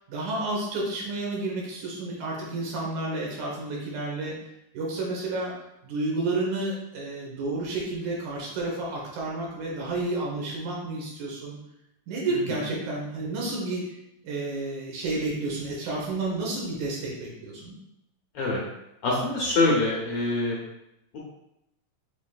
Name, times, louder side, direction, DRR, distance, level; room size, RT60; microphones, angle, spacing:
voice 1, 0.1-4.4 4.7-5.5 5.8-11.6 12.1-14.0 14.2-17.8, right 2 dB, 80° right, -3 dB, 2.6 m, -31 dB
voice 2, 19.0-20.6, left 2 dB, 65° left, -4 dB, 1.5 m, -24 dB
6.0 x 3.6 x 2.3 m, 0.85 s
omnidirectional pair, 3.3 m